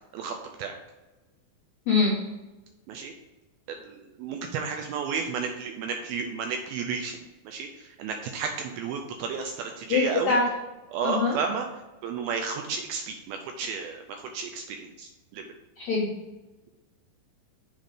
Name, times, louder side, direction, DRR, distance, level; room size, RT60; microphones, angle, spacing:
voice 1, 0.1-0.7 2.9-3.1 3.7-10.4 10.9-11.7 12.0-15.5, right 5 dB, 80° right, 4 dB, 2.2 m, -32 dB
voice 2, 9.9-10.4 11.0-11.4 15.8-16.1, left 4 dB, 85° left, -3 dB, 1.5 m, -23 dB
7.3 x 3.9 x 4.9 m, 1.1 s
omnidirectional pair, 4.8 m